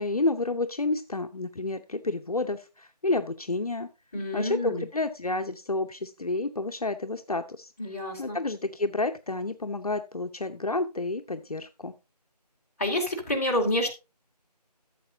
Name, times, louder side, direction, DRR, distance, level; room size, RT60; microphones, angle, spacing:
voice 1, 0.0-3.9 4.3-12.0, left 2 dB, 60° left, 6 dB, 0.8 m, -30 dB
voice 2, 4.1-4.8 7.8-8.4 12.8-13.9, left 1 dB, 20° left, -3 dB, 2.3 m, -28 dB
13.5 x 7.6 x 2.7 m, 0.27 s
figure-of-eight pair, 165°, 21 cm